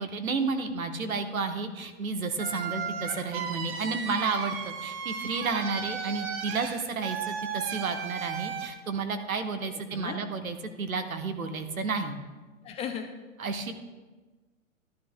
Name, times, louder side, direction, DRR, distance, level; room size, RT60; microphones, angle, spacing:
voice 1, 0.0-12.1 13.4-13.7, right 4 dB, 80° right, 7 dB, 1.1 m, -31 dB
sound 1, 2.4-8.7, right 7 dB, 45° right, 1.2 m, -35 dB
voice 2, 12.6-13.1, left 8 dB, 15° left, 5 dB, 0.5 m, -35 dB
13.0 x 11.5 x 2.2 m, 1.3 s
figure-of-eight pair, 110°, 41 cm